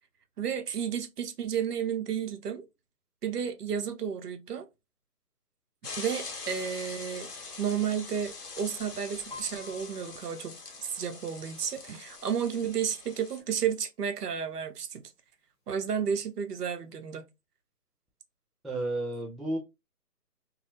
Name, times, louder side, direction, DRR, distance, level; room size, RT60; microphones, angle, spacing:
voice 1, 0.4-2.7 3.2-4.7 6.0-7.3 7.6-15.0 15.7-17.3, right 8 dB, 80° right, 0.7 m, -32 dB
sound 1, 5.8-13.4, left 4 dB, 70° left, 0.9 m, -43 dB
Piano, 9.3-12.9 13.3-13.7 14.0-14.7 15.3-15.4 15.6-16.6 17.0-17.1, left 3 dB, 35° left, 0.7 m, -52 dB
voice 2, 18.6-19.6, right 1 dB, ahead, 0.3 m, -32 dB
2.6 x 2.0 x 2.7 m
hypercardioid pair, 160°, 47 cm